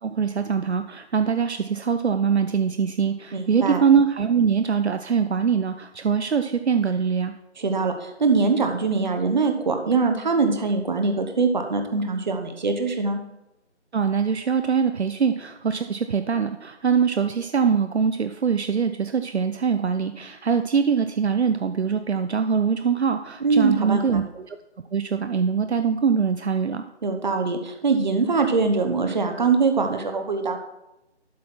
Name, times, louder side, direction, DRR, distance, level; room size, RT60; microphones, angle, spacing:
voice 1, 0.0-7.3 13.9-24.6 24.9-26.8, right 6 dB, 70° right, 8 dB, 0.7 m, -23 dB
voice 2, 3.3-3.8 7.6-13.2 23.4-24.2 27.0-30.6, right 4 dB, 40° right, 5 dB, 1.2 m, -23 dB
12.0 x 4.1 x 5.7 m, 0.89 s
figure-of-eight pair, 160°, 35 cm